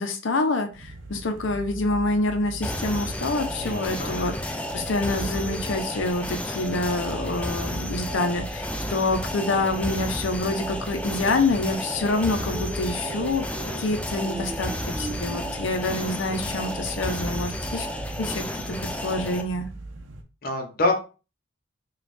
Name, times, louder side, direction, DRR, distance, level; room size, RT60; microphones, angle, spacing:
voice 1, 0.0-13.4 13.8-17.9 18.2-19.7, left 2 dB, 75° left, 6 dB, 0.6 m, -27 dB
sound 1, 0.7-20.2, right 2 dB, 70° right, 0.6 m, -40 dB
sound 2, 2.6-19.4, left 1 dB, 5° left, 0.3 m, -32 dB
voice 2, 3.6-4.3 20.4-20.9, left 2 dB, 50° left, 3 dB, 0.9 m, -26 dB
sound 3, 4.8-8.5 9.7-16.6, right 2 dB, 35° right, 1.2 m, -42 dB
5.1 x 2.3 x 2.5 m, 0.33 s
head